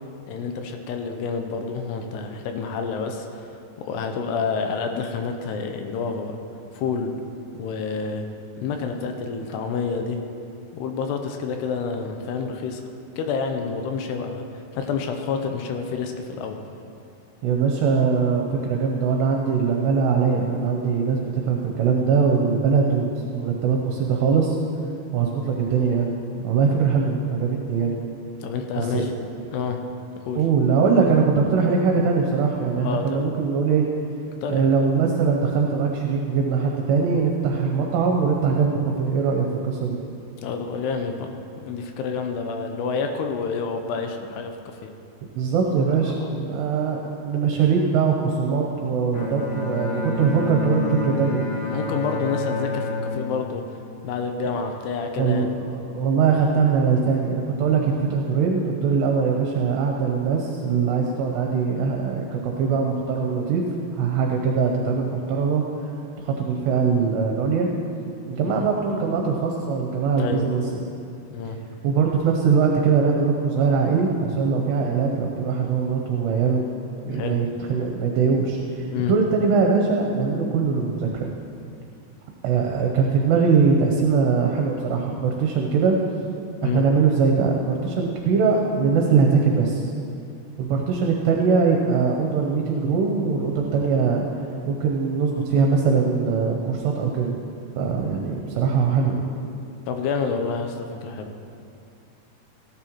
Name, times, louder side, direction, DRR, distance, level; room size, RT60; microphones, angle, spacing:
voice 1, 0.3-3.5 3.8-6.4 6.7-7.1 7.5-8.3 8.6-10.2 10.7-12.8 13.2-14.4 14.7-16.6 28.4-29.2 29.5-29.8 30.2-30.4 32.8-33.3 34.4-34.7 40.4-41.3 41.6-44.5 44.8-44.9 51.7-53.6 54.0-55.5 68.4-68.7 70.2-70.8 71.3-71.6 77.1-77.4 78.9-79.1 86.6-86.8 99.9-101.3, left 5 dB, 80° left, 4 dB, 2.6 m, -28 dB
voice 2, 17.4-24.6 25.1-26.1 26.4-28.0 28.8-29.1 30.4-33.8 34.5-40.0 45.4-51.4 55.2-63.6 64.0-65.6 66.2-67.7 68.3-70.6 71.8-76.7 77.1-81.3 82.4-86.0 86.6-89.8 90.6-94.3 94.7-97.3 97.8-99.2, right 5 dB, 75° right, 1 dB, 2.8 m, -22 dB
Bowed string instrument, 49.1-54.6, left 3 dB, 65° left, 1.6 m, -29 dB
17.5 x 10.5 x 3.1 m, 2.6 s
omnidirectional pair, 5.1 m